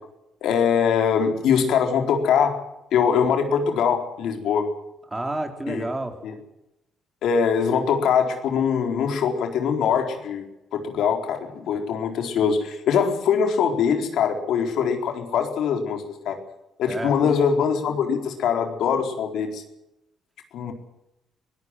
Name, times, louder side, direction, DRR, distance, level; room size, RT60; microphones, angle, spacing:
voice 1, 0.4-2.6 2.9-4.7 5.7-5.8 7.2-10.4 10.7-16.4 16.8-19.6 20.5-20.7, left 7 dB, 80° left, 4 dB, 4.2 m, -22 dB
voice 2, 5.1-6.2 16.9-17.4, right 2 dB, 15° right, 5 dB, 4.2 m, -30 dB
23.0 x 17.5 x 7.7 m, 0.89 s
cardioid pair, 90°, 0 cm